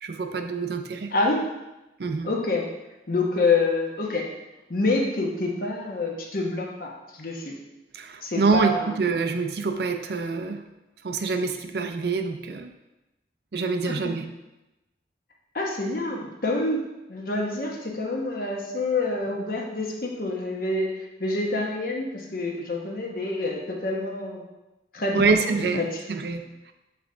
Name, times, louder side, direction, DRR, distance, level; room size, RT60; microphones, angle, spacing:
voice 1, 0.0-1.1 2.0-2.3 7.9-10.6 11.0-12.7 13.5-14.2 25.1-25.8 26.1-26.7, right 4 dB, 65° right, 6 dB, 0.5 m, -26 dB
voice 2, 1.1-1.4 2.2-2.6 3.1-4.3 4.7-7.5 8.2-9.0 13.9-14.0 15.5-16.8 17.1-20.9 21.2-24.4 24.9-26.0, left 2 dB, 50° left, -1 dB, 1.0 m, -27 dB
7.0 x 3.5 x 3.8 m, 0.99 s
head